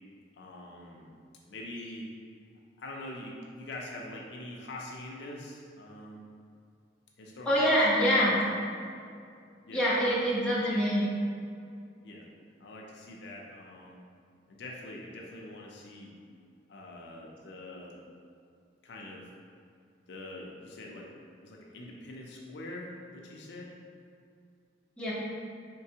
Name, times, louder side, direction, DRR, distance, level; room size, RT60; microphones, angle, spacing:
voice 1, 0.4-1.1 1.5-2.1 2.8-6.2 7.2-8.1 8.7-8.9 9.6-10.3 12.0-12.3 12.6-14.0 14.5-16.1 16.7-17.9 18.8-19.3 20.1-21.1 21.4-23.7, left 1 dB, 65° left, -2 dB, 0.5 m, -44 dB
voice 2, 7.4-8.3 9.7-11.0 25.0-25.1, equal, 5° left, -9 dB, 0.9 m, -25 dB
4.4 x 3.2 x 2.8 m, 2.3 s
head